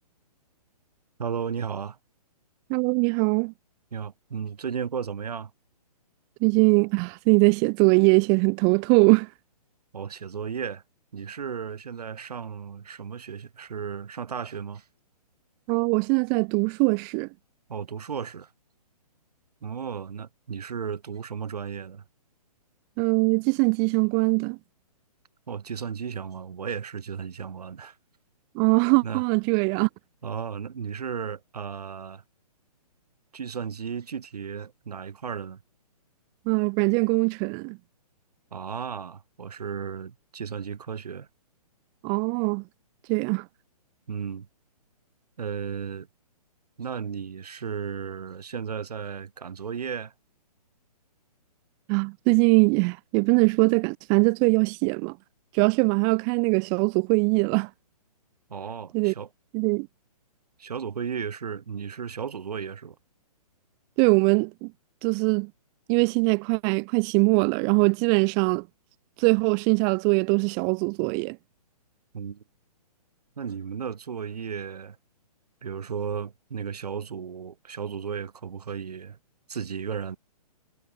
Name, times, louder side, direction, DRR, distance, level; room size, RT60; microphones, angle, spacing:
voice 1, 1.2-2.0 3.9-5.5 9.9-10.8 11.1-14.9 17.7-18.5 19.6-22.0 25.5-28.0 29.0-29.2 30.2-32.2 33.3-35.6 38.5-41.3 44.1-44.5 45.4-46.1 46.8-50.1 58.5-59.3 60.6-63.0 72.1-72.4 73.4-75.0 75.6-79.2 79.5-80.2, right 7 dB, 75° right, 3.8 m, -34 dB
voice 2, 2.7-3.5 6.4-9.3 15.7-17.3 23.0-24.6 28.5-29.9 36.5-37.8 42.0-42.6 43.1-43.4 51.9-55.1 55.5-57.7 58.9-59.1 59.5-59.9 64.0-64.7 65.0-65.5 65.9-68.6 69.2-71.4, right 40 dB or more, 20° right, 0.6 m, -22 dB
hypercardioid pair, 150°, 20 cm